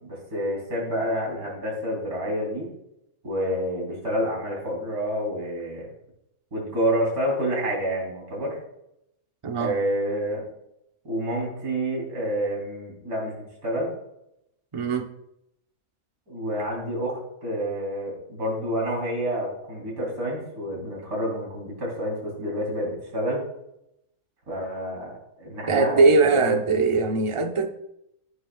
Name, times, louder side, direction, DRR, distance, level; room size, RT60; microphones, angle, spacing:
voice 1, 0.0-2.7 3.2-5.9 6.5-8.6 9.6-10.4 11.0-13.9 16.3-23.4 24.5-26.6, equal, 85° right, -3 dB, 4.1 m, -28 dB
voice 2, 9.4-9.7 14.7-15.1 25.7-27.7, right 3 dB, 30° right, 5 dB, 0.7 m, -21 dB
14.0 x 9.3 x 2.3 m, 0.82 s
omnidirectional pair, 1.5 m